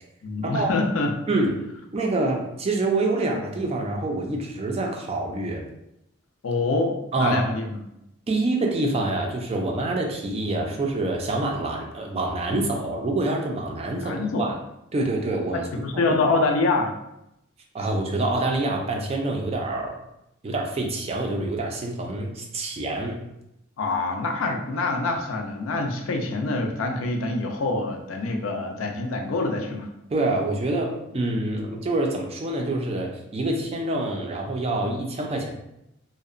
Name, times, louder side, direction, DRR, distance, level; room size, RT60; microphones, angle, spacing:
voice 1, 0.2-1.1 6.4-7.8 13.9-14.5 15.5-16.9 23.8-29.9, left 3 dB, 80° left, 3 dB, 0.4 m, -25 dB
voice 2, 1.9-5.6 7.1-7.4 8.3-14.6 14.9-15.7 17.7-19.9 20.4-23.2 30.1-35.5, right 2 dB, 30° right, 1 dB, 0.3 m, -26 dB
2.7 x 2.0 x 2.4 m, 0.83 s
head